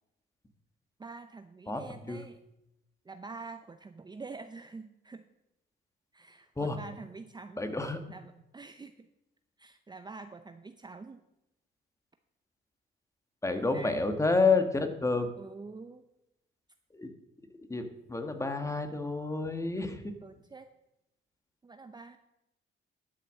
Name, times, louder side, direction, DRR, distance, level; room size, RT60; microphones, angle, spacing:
voice 1, 1.0-2.4 3.0-5.2 6.1-9.1 9.6-11.2 13.7-14.1 15.4-16.0 20.2-20.7 21.6-22.2, right 4 dB, 20° right, 8 dB, 0.6 m, -46 dB
voice 2, 7.6-8.0 13.4-15.3 16.9-17.1 17.7-20.1, left 3 dB, 15° left, 7 dB, 1.4 m, -29 dB
11.0 x 5.8 x 7.4 m, 0.89 s
cardioid pair, 90°, 20 cm